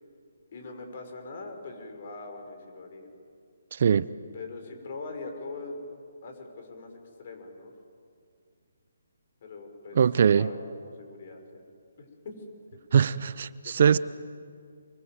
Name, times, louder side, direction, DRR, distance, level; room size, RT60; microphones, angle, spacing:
voice 1, 0.5-3.1 4.3-5.8 6.2-7.7 9.4-10.0 10.3-10.6 10.9-11.6 12.0-12.3 13.6-14.0, left 3 dB, 45° left, 6.3 m, -42 dB
voice 2, 3.7-4.1 9.9-10.5 12.9-14.0, right 7 dB, 50° right, 0.7 m, -21 dB
27.5 x 23.5 x 7.9 m
figure-of-eight pair, 145°, 0 cm